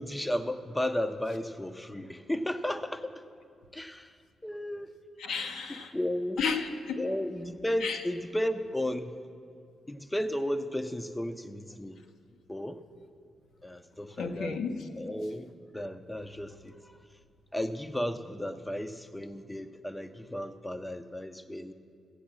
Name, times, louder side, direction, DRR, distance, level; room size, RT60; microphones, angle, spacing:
voice 1, 0.0-3.1 3.7-4.1 4.4-4.9 5.7-6.4 7.0-9.2 9.9-12.0 12.5-12.8 13.6-14.6 15.0-17.0 17.5-21.7, left 1 dB, 10° left, 10 dB, 0.5 m, -34 dB
voice 2, 5.2-5.9 6.4-7.0 7.8-8.0 14.2-14.8, left 5 dB, 90° left, 5 dB, 1.0 m, -32 dB
15.0 x 7.9 x 7.4 m, 2.3 s
wide cardioid pair, 145°, 0 cm